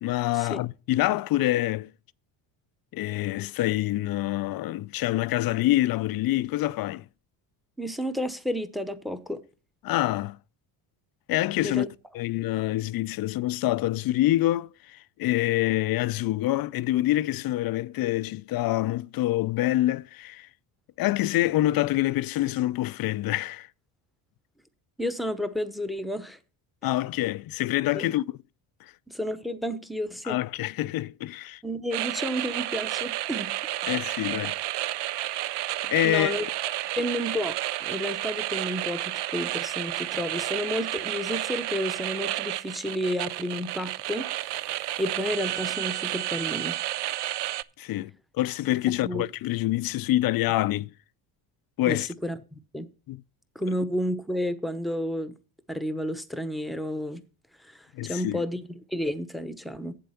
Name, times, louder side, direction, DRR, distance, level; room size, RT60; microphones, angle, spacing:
voice 1, 0.0-1.9 2.9-7.0 9.8-10.4 11.3-11.8 12.1-20.5 21.0-23.7 26.8-28.2 30.3-31.6 33.9-34.6 35.8-36.5 47.8-50.9 51.8-52.1 53.1-53.2 57.9-58.4, left 15 dB, 50° left, 0.4 m, -26 dB
voice 2, 7.8-9.4 11.6-11.9 25.0-26.4 26.8-26.9 27.9-28.1 29.1-30.4 31.6-33.9 36.0-36.5 37.0-46.8 49.0-49.2 51.8-52.9 53.5-55.4 55.7-57.2 57.6-60.0, equal, ahead, 0.8 m, -31 dB
sound 1, 31.9-47.6, right 15 dB, 60° right, 0.5 m, -31 dB
8.6 x 7.7 x 5.7 m
cardioid pair, 105°, 47 cm